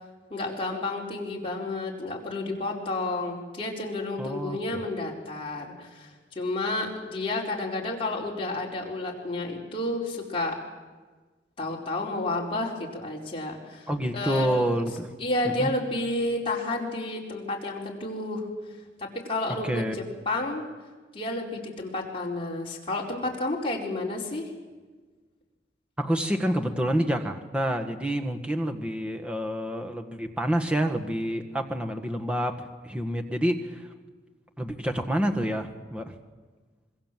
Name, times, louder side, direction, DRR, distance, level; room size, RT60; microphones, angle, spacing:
voice 1, 0.3-10.6 11.6-14.6 15.2-18.5 19.0-20.6 21.1-24.5, left 2 dB, 30° left, -2 dB, 4.4 m, -31 dB
voice 2, 4.2-4.6 13.9-15.1 15.4-15.7 19.6-19.9 26.0-33.9 34.6-36.1, equal, 5° right, 4 dB, 1.6 m, -28 dB
26.0 x 22.0 x 7.6 m, 1.3 s
head